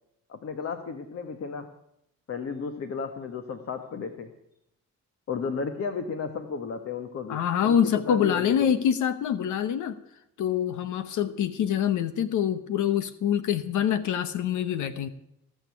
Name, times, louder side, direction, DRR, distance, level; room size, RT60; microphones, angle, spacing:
voice 1, 0.3-1.7 2.3-4.3 5.3-8.9, left 5 dB, 50° left, 7 dB, 1.4 m, -34 dB
voice 2, 7.3-10.0 10.4-15.1, left 9 dB, 75° left, 12 dB, 1.0 m, -25 dB
17.5 x 6.7 x 9.6 m, 0.81 s
cardioid pair, 90°, 30 cm